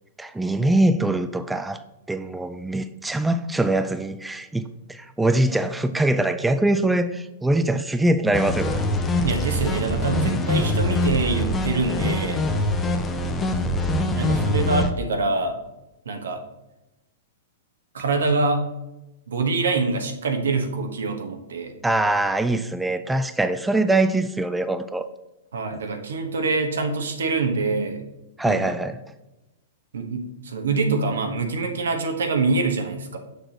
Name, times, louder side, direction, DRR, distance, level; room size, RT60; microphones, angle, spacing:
voice 1, 0.2-8.8 14.3-14.7 21.8-25.1 28.4-29.0, right 2 dB, 5° right, 10 dB, 0.4 m, -23 dB
sound 1, 8.3-14.9, left 1 dB, 15° left, 0.7 m, -24 dB
voice 2, 9.2-12.4 14.1-15.6 16.0-16.4 17.9-18.7 19.3-21.7 25.5-28.0 28.4-28.7 29.9-33.2, right 3 dB, 85° right, 4 dB, 1.2 m, -25 dB
6.7 x 6.4 x 2.9 m, 0.97 s
hypercardioid pair, 125°, 0 cm